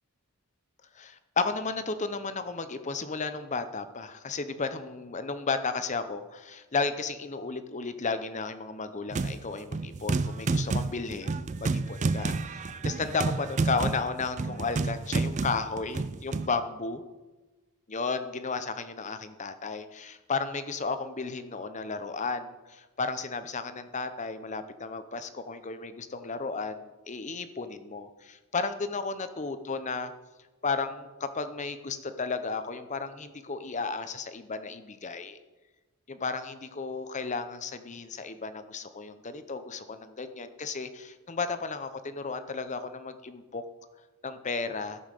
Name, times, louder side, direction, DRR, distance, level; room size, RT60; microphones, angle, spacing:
voice 1, 1.0-17.0 17.9-30.1 30.6-35.4 36.1-43.6 44.2-45.0, left 4 dB, 35° left, 11 dB, 0.7 m, -34 dB
sound 1, 9.1-9.4 9.7-16.5, right 3 dB, 30° right, 0.4 m, -30 dB
14.0 x 5.6 x 6.5 m, 1.2 s
head